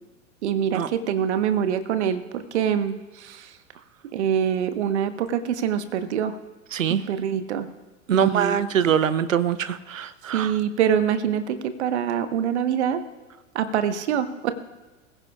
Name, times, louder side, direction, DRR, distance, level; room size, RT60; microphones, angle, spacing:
voice 1, 0.4-3.5 4.1-6.3 6.9-7.7 8.1-8.6 10.3-13.0 13.5-14.5, right 8 dB, 55° right, 10 dB, 1.2 m, -25 dB
voice 2, 6.7-7.0 8.1-10.5, right 8 dB, 80° right, 15 dB, 0.7 m, -23 dB
22.5 x 15.5 x 2.4 m, 1.2 s
figure-of-eight pair, 95°, 39 cm